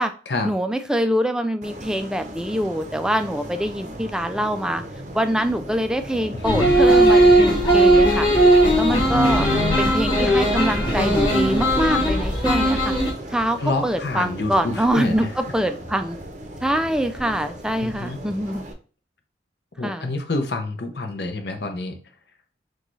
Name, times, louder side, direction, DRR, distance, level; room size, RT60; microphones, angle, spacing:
voice 1, 0.4-4.8 5.1-8.3 8.8-9.5 9.8-12.9 13.3-16.2 16.6-18.7 19.8-20.1, equal, 5° right, 8 dB, 0.3 m, -24 dB
sound 1, 1.6-18.7, right 1 dB, 40° right, 0.6 m, -36 dB
voice 2, 6.3-6.7 9.1-9.9 13.6-15.3 17.8-18.2 19.8-22.0, left 2 dB, 65° left, 6 dB, 0.7 m, -28 dB
sound 2, 6.4-13.1, right 1 dB, 25° left, 1.4 m, -17 dB
6.3 x 2.3 x 3.1 m, 0.38 s
head